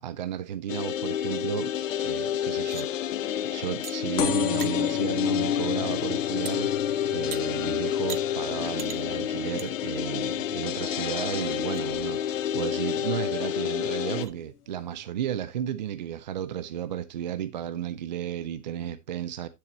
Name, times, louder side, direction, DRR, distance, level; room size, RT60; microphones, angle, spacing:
voice 1, 0.0-6.7 7.1-19.5, right 10 dB, 35° right, 0.4 m, -33 dB
sound 1, 0.7-14.3, left 10 dB, 60° left, 0.9 m, -30 dB
sound 2, 2.5-2.9 3.8-3.9 4.4-4.7 6.5-6.6 7.3-7.4 8.1-8.3 8.8-9.0 9.6-9.7 10.1-10.2 10.9-11.0 11.5-11.8 13.5-13.6 14.1-14.3, right 9 dB, 75° right, 1.2 m, -40 dB
sound 3, 4.2-11.4 11.9-12.4 13.2-13.3 13.5-13.6 13.8-13.9, left 9 dB, 80° left, 1.1 m, -31 dB
9.6 x 8.6 x 2.9 m
hypercardioid pair, 135°, 45 cm